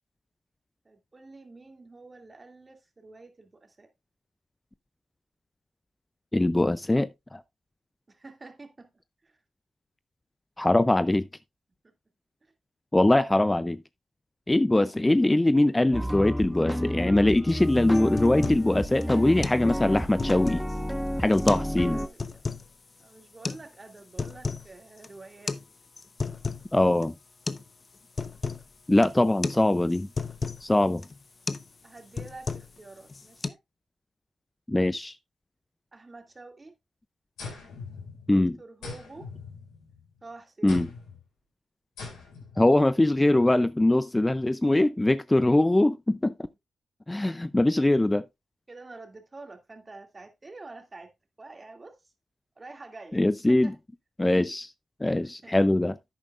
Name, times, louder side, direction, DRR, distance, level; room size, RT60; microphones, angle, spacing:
voice 1, 0.8-3.9 8.1-8.9 9.2-9.4 11.8-11.9 12.4-12.5 21.9-22.5 23.0-25.6 31.8-33.6 35.9-36.7 38.2-39.3 40.2-40.8 48.7-51.1 51.4-52.1 52.6-53.8 55.0-55.6, right 3 dB, 35° right, 2.3 m, -48 dB
voice 2, 6.3-7.4 10.6-11.3 12.9-13.8 14.5-20.6 21.2-22.0 26.7-27.1 28.9-30.1 30.6-31.0 34.7-35.2 38.3-38.5 40.6-40.9 42.6-46.3 47.1-48.3 53.1-53.7 54.2-54.7 55.0-56.0, left 1 dB, 15° left, 0.5 m, -22 dB
sound 1, 15.9-22.1, equal, 5° right, 1.3 m, -31 dB
sound 2, 17.5-17.6 17.9-18.7 19.0-19.1 19.4-19.6 20.0-20.8 21.3-21.7 22.0-22.7 23.4-23.6 24.0-24.7 25.0-25.1 25.5-25.6 26.0-26.7 27.0-27.1 27.5-27.7 27.9-28.7 29.0-29.2 29.4-29.6 29.9-30.6 31.0-31.2 31.5-31.7 32.0-32.8 33.1-33.5, left 4 dB, 45° left, 0.8 m, -33 dB
sound 3, 37.4-38.4 38.8-40.1 40.7-41.2 42.0-42.6, left 4 dB, 85° left, 5.2 m, -41 dB
10.5 x 8.8 x 2.4 m
supercardioid pair, 50°, 0 cm